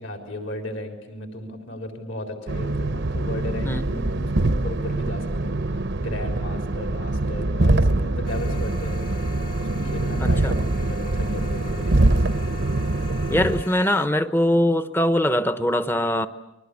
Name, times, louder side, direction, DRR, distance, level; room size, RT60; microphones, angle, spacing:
voice 1, 0.0-12.4, left 1 dB, 60° left, 5 dB, 4.1 m, -35 dB
sound 1, 2.5-13.6, right 2 dB, 55° right, 0.9 m, -24 dB
sound 2, 8.2-14.1, left 4 dB, 45° left, 2.1 m, -43 dB
voice 2, 10.2-10.6 13.3-16.3, left 1 dB, 10° left, 12 dB, 0.9 m, -22 dB
29.5 x 22.0 x 8.4 m, 0.95 s
head